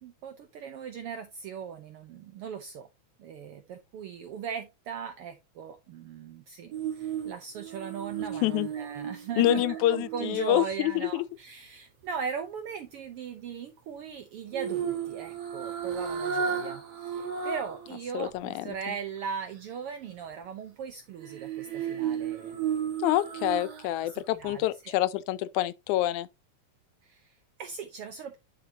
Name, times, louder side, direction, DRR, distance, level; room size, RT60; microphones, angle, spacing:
voice 1, 0.0-2.9 3.2-22.6 24.0-24.9 27.0-28.4, right 7 dB, 75° right, 1.3 m, -39 dB
sound 1, 6.7-10.9 14.5-17.9 18.3-18.4 21.2-24.1 24.4-24.6, right 7 dB, 60° right, 2.2 m, -34 dB
voice 2, 9.4-11.2 18.1-18.7 23.0-26.3, left 14 dB, 85° left, 2.0 m, -27 dB
10.5 x 5.1 x 2.8 m
omnidirectional pair, 3.4 m